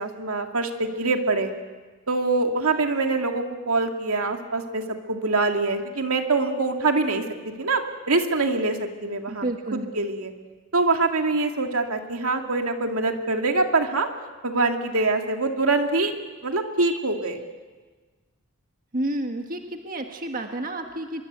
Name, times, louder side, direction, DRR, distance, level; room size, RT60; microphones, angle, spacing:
voice 1, 0.0-1.5 2.1-9.5 9.7-10.3 10.7-14.1 14.4-16.1 16.4-17.4, right 3 dB, 75° right, 4 dB, 2.3 m, -24 dB
voice 2, 9.3-9.9 18.9-21.2, right 1 dB, 40° right, 4 dB, 1.6 m, -30 dB
24.5 x 23.0 x 8.1 m, 1.3 s
head